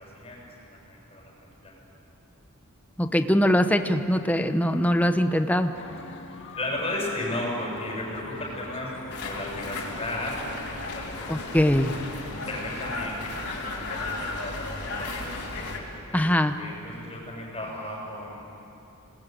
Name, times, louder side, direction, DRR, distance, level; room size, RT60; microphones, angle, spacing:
voice 1, 0.0-1.8 6.6-10.6 10.9-13.3 13.6-15.3 16.1-16.3 16.6-18.4, left 1 dB, 25° left, -2 dB, 7.6 m, -35 dB
voice 2, 3.0-5.7 11.3-11.9 16.1-16.6, equal, 5° left, 7 dB, 0.9 m, -22 dB
sound 1, 5.7-12.2, left 3 dB, 55° left, 1.9 m, -43 dB
sound 2, 9.1-15.8, left 2 dB, 80° left, 4.5 m, -34 dB
27.0 x 20.5 x 9.3 m, 2.9 s
head